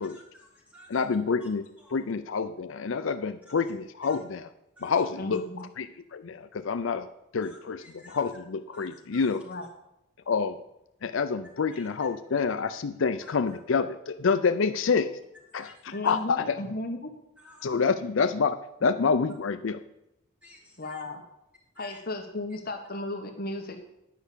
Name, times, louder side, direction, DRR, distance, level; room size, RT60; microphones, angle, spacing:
voice 1, 0.1-0.9 1.4-1.5 1.8-1.9 4.0-4.2 4.8-4.9 7.4-8.2 8.7-9.2 11.7-11.8 13.2-13.6 15.6-15.8 16.0-16.1 17.4-17.8 20.4-21.0 21.8-22.0, left 1 dB, 5° right, -2 dB, 2.6 m, -52 dB
voice 2, 0.9-1.6 1.9-4.5 4.8-7.1 7.3-9.4 10.3-10.6 11.0-15.1 15.5-16.6 17.6-19.8, left 5 dB, 70° left, 10 dB, 0.5 m, -27 dB
voice 3, 5.2-5.6 9.5-9.6 15.9-17.1 20.8-21.2 21.8-23.8, left 2 dB, 45° left, 3 dB, 1.3 m, -35 dB
10.5 x 5.7 x 8.3 m, 0.86 s
head